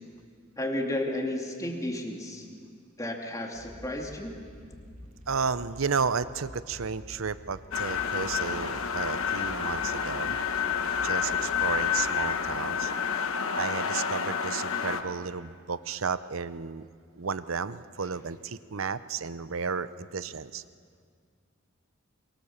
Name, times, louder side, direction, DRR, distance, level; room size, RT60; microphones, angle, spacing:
voice 1, 0.6-2.4 3.0-4.3, left 1 dB, 15° left, 2 dB, 2.5 m, -32 dB
sound 1, 3.5-13.6, equal, 35° right, 2.3 m, -49 dB
voice 2, 5.3-10.4 11.0-12.9 13.6-16.9 17.2-20.6, right 5 dB, 75° right, 15 dB, 0.7 m, -33 dB
sound 2, 7.7-15.0, left 7 dB, 75° left, 1.3 m, -29 dB
24.5 x 23.0 x 7.2 m, 2.1 s
head